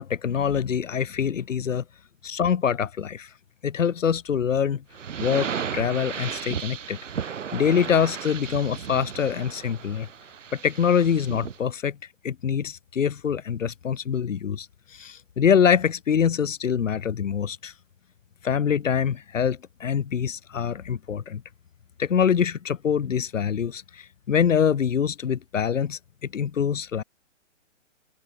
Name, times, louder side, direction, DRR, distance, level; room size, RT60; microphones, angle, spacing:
voice 1, 0.0-1.8 2.2-3.3 3.6-4.8 5.2-7.0 7.5-10.1 10.5-12.0 12.2-17.7 18.4-21.4 22.0-26.0 26.3-27.0, left 7 dB, 85° left, 1.0 m, -24 dB
sound 1, 4.9-11.6, right 7 dB, 75° right, 1.4 m, -34 dB
hypercardioid pair, 140°, 37 cm